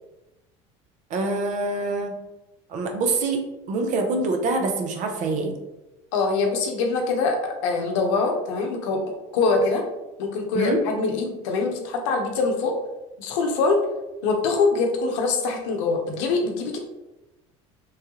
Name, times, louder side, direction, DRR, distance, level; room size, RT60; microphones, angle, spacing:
voice 1, 1.1-2.1 2.7-3.4 3.7-5.6 10.5-10.8, right 3 dB, 55° right, 4 dB, 0.6 m, -25 dB
voice 2, 6.1-9.0 9.3-9.8 10.2-12.7 13.2-13.9 14.2-16.8, left 3 dB, 80° left, 2 dB, 0.7 m, -23 dB
3.2 x 2.3 x 2.8 m, 0.99 s
supercardioid pair, 95°, 15 cm